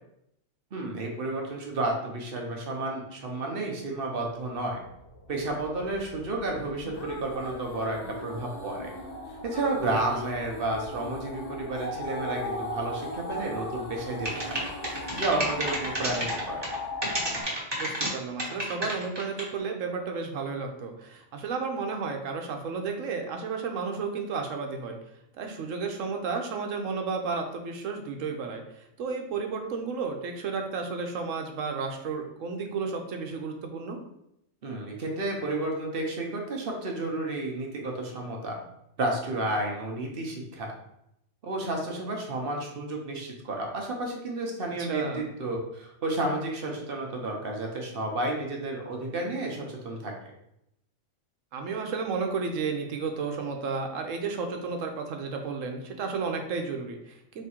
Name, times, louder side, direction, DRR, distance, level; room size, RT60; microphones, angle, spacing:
voice 1, 0.7-4.8 5.3-8.9 9.4-14.6 15.2-16.7 34.6-38.6 39.0-40.7 41.4-50.1, right 2 dB, 50° right, 0 dB, 1.0 m, -31 dB
sound 1, 4.5-17.4, left 1 dB, 75° left, 1.2 m, -40 dB
sound 2, 6.6-17.6, left 2 dB, 40° left, 0.7 m, -41 dB
sound 3, 14.3-16.8 17.0-18.1 18.4-19.6, right 1 dB, 20° right, 1.0 m, -30 dB
voice 2, 17.8-25.0 25.4-28.6 29.0-34.0 44.8-45.2 51.5-57.5, right 5 dB, 85° right, 4 dB, 1.1 m, -32 dB
3.6 x 3.1 x 4.3 m, 0.80 s
omnidirectional pair, 1.3 m